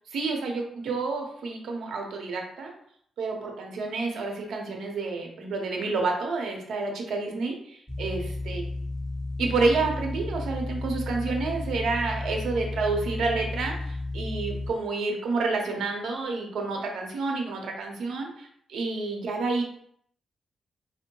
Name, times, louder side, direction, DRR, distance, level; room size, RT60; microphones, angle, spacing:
voice 1, 0.1-2.7 3.2-8.6 9.4-19.6, right 3 dB, 75° right, 2 dB, 0.8 m, -29 dB
sound 1, 7.9-14.7, left 2 dB, 5° left, 1.1 m, -33 dB
4.4 x 2.1 x 2.9 m, 0.67 s
cardioid pair, 100°, 0 cm